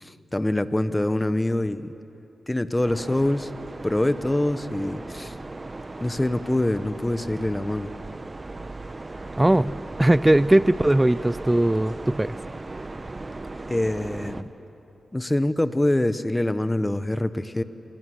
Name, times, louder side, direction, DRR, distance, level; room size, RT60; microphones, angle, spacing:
voice 1, 0.0-1.9 2.5-3.5 3.8-5.3 6.0-7.9 13.7-14.5 15.1-17.6, left 1 dB, 20° left, 12 dB, 1.1 m, -25 dB
sound 1, 2.8-14.4, right 2 dB, 35° right, 1.2 m, -37 dB
voice 2, 9.4-12.4, right 1 dB, 15° right, 18 dB, 0.5 m, -19 dB
26.0 x 19.5 x 7.9 m, 2.9 s
cardioid pair, 45°, 0 cm